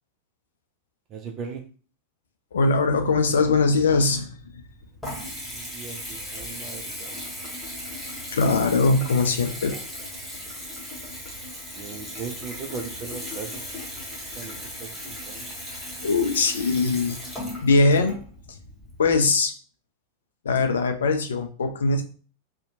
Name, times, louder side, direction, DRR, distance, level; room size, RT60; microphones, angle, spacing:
voice 1, 1.1-1.6 5.4-7.3 11.7-13.6 14.3-15.5, right 5 dB, 35° right, 3 dB, 0.4 m, -38 dB
voice 2, 2.5-4.4 8.3-9.8 15.7-17.2 17.6-18.1 18.5-18.6 19.0-19.5 20.4-22.0, left 3 dB, 65° left, 6 dB, 0.4 m, -21 dB
Water tap faucet / Bathtub (filling or washing) / Trickle dribble, 4.4-19.2, left 1 dB, 10° left, 1.0 m, -37 dB
2.6 x 2.1 x 2.6 m, 0.39 s
figure-of-eight pair, 90°, 0 cm